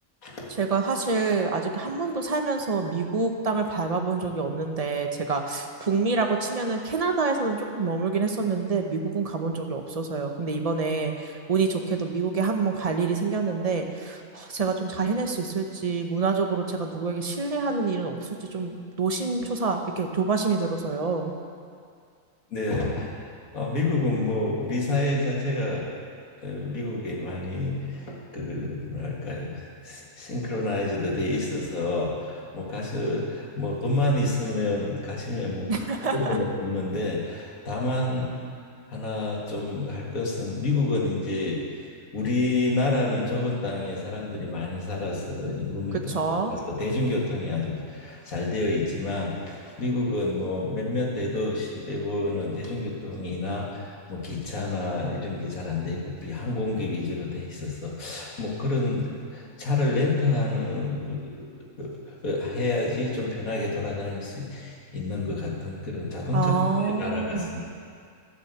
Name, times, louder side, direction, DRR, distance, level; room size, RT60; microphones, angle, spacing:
voice 1, 0.5-21.3 35.7-36.4 46.1-46.5 66.3-67.5, right 4 dB, 35° right, 4 dB, 0.8 m, -27 dB
voice 2, 22.5-23.3 23.5-25.9 26.4-35.9 36.1-38.3 38.9-41.6 42.1-46.1 46.5-61.5 61.8-67.7, left 2 dB, 85° left, -3 dB, 2.3 m, -28 dB
11.5 x 6.4 x 8.0 m, 2.2 s
omnidirectional pair, 1.4 m